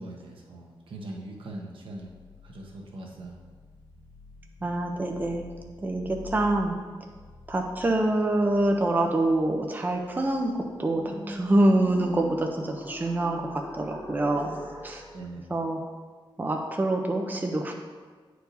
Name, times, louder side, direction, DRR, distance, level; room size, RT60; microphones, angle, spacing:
voice 1, 0.0-2.1 2.4-3.4 4.6-4.8 15.1-15.5, right 2 dB, 75° right, -1 dB, 1.1 m, -41 dB
sound 1, 2.1-15.2, left 2 dB, 85° left, 1.4 m, -45 dB
voice 2, 4.6-5.4 5.8-6.8 7.5-14.6 14.8-15.0 15.5-15.8 16.4-17.7, right 1 dB, 20° right, 2 dB, 0.5 m, -26 dB
9.7 x 4.6 x 2.7 m, 1.5 s
wide cardioid pair, 110°, 9 cm